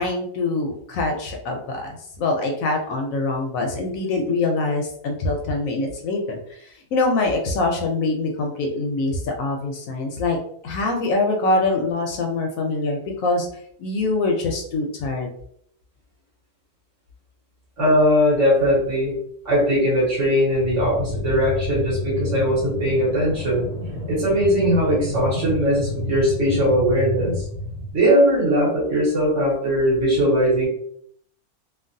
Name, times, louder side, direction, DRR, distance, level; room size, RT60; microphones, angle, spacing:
voice 1, 0.0-10.4 10.6-13.5 13.8-15.3, left 3 dB, 70° left, 2 dB, 0.9 m, -24 dB
voice 2, 17.8-19.2 19.4-23.7 24.1-27.4 27.9-30.7, equal, 55° right, -6 dB, 1.6 m, -20 dB
sound 1, 20.6-27.9, left 1 dB, 75° right, 1.6 m, -30 dB
3.1 x 2.3 x 2.6 m, 0.67 s
omnidirectional pair, 1.6 m